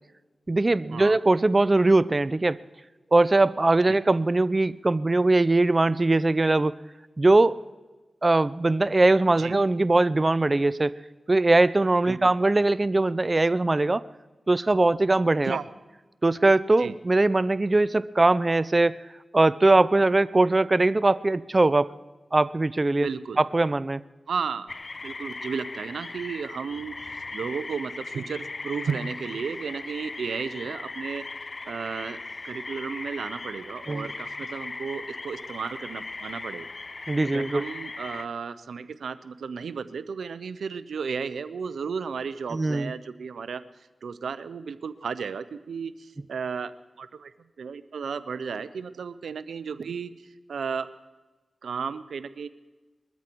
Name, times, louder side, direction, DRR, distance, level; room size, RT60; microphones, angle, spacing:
voice 1, 0.5-2.6 3.1-6.7 7.2-7.6 8.2-11.0 11.3-14.1 14.5-15.6 16.2-19.0 19.3-21.9 22.3-23.1 23.4-24.0 33.9-34.1 37.1-37.7 42.5-42.9, right 2 dB, 40° right, 17 dB, 0.5 m, -21 dB
voice 2, 23.0-23.4 24.3-24.8 25.0-31.2 31.7-32.2 32.4-36.7 37.2-43.6 44.0-50.1 50.5-50.9 51.6-52.5, right 6 dB, 90° right, 14 dB, 0.7 m, -34 dB
sound 1, 24.7-38.3, left 3 dB, 55° left, 0.6 m, -38 dB
21.5 x 13.5 x 4.6 m, 1.2 s
cardioid pair, 40°, 0 cm